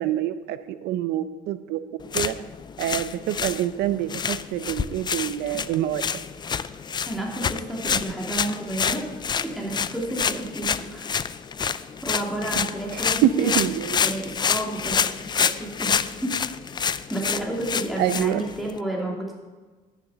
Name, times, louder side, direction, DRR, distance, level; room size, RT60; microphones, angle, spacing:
voice 1, 0.0-1.8 2.1-2.4 2.8-6.0 12.9-14.0 18.0-18.4, right 12 dB, 80° right, 12 dB, 0.7 m, -26 dB
sound 1, 2.0-18.8, left 7 dB, 25° left, 0.4 m, -28 dB
voice 2, 7.1-9.0 9.4-11.2 12.0-13.7 14.0-15.1 15.3-16.4 16.7-16.8 17.1-19.3, right 1 dB, ahead, -3 dB, 2.6 m, -31 dB
12.5 x 7.0 x 5.7 m, 1.3 s
cardioid pair, 110°, 17 cm